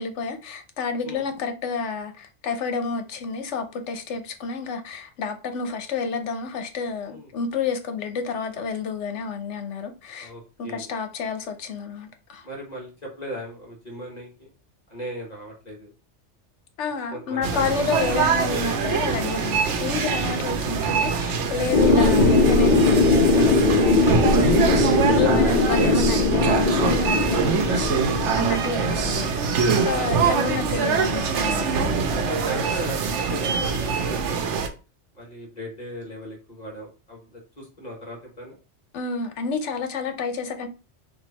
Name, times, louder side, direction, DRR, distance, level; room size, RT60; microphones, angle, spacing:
voice 1, 0.0-10.3 10.6-12.4 16.8-24.9 25.2-28.0 28.4-32.3 38.9-40.7, left 5 dB, 80° left, 1.1 m, -30 dB
voice 2, 10.2-10.9 12.4-14.5 14.9-15.9 17.1-17.8 19.5-19.7 31.7-34.5 35.1-38.6, equal, 40° left, 1.3 m, -38 dB
sound 1, 17.4-34.7, right 5 dB, 85° right, 1.0 m, -24 dB
sound 2, 21.7-29.1, left 3 dB, 55° left, 0.7 m, -20 dB
4.6 x 2.7 x 4.0 m
omnidirectional pair, 1.2 m